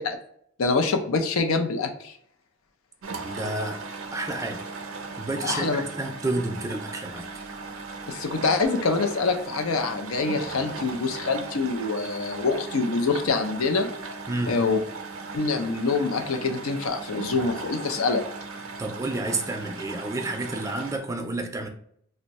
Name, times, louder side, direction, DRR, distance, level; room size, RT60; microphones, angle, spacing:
voice 1, 0.6-2.1 5.4-5.8 8.1-13.9 14.5-14.8 15.3-18.2, left 4 dB, 85° left, 6 dB, 0.5 m, -25 dB
sound 1, 3.0-21.0, right 4 dB, 70° right, 0.5 m, -38 dB
voice 2, 3.2-3.8 4.1-4.6 5.2-7.3 14.3-14.6 18.8-21.7, right 2 dB, 15° right, 5 dB, 0.4 m, -30 dB
2.6 x 2.1 x 4.0 m, 0.67 s
head